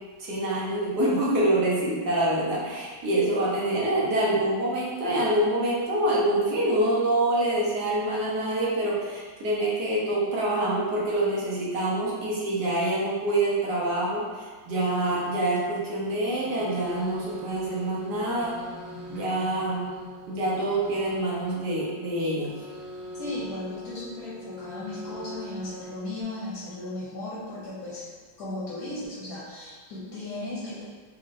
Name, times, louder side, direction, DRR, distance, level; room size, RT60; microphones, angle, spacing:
voice 1, 0.2-18.6 19.1-19.9 20.3-22.5, right 1 dB, 65° right, -5 dB, 1.3 m, -26 dB
sound 1, 16.3-26.2, equal, 85° right, 1.7 m, -41 dB
voice 2, 23.1-28.1 28.4-30.8, left 2 dB, 60° left, -8 dB, 1.2 m, -36 dB
4.2 x 2.9 x 2.5 m, 1.5 s
omnidirectional pair, 2.1 m